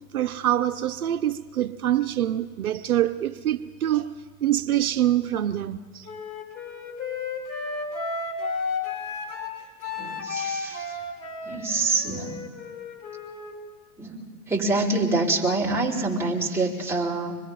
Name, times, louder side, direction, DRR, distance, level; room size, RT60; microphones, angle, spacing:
voice 1, 0.1-4.1 4.4-6.1, right 12 dB, 75° right, 0.8 m, -25 dB
Wind instrument woodwind instrument, 6.0-13.6, left 4 dB, 45° left, 4.3 m, -33 dB
voice 2, 10.0-11.0 11.4-12.4 14.0-17.4, right 3 dB, 5° right, 4.6 m, -26 dB
25.5 x 21.0 x 5.7 m
figure-of-eight pair, 85°, 43 cm